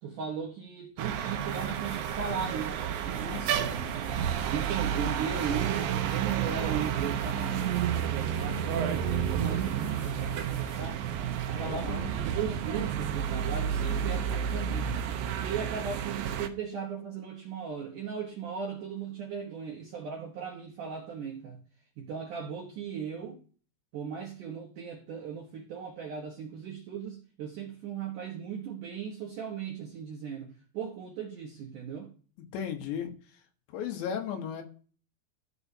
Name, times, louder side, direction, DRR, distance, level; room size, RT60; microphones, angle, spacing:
voice 1, 0.0-4.1 4.5-11.0 11.5-15.0 15.4-21.6 22.0-23.4 23.9-32.1, right 7 dB, 70° right, 2.0 m, -37 dB
sound 1, 0.8-0.9 1.3-11.0 13.8-13.9, left 3 dB, 60° left, 7.7 m, -56 dB
sound 2, 1.0-16.5, right 8 dB, 90° right, 2.0 m, -31 dB
voice 2, 3.2-3.7 11.5-12.1 32.5-33.1 33.7-34.6, left 8 dB, 80° left, 3.4 m, -35 dB
14.0 x 6.9 x 2.8 m
omnidirectional pair, 5.1 m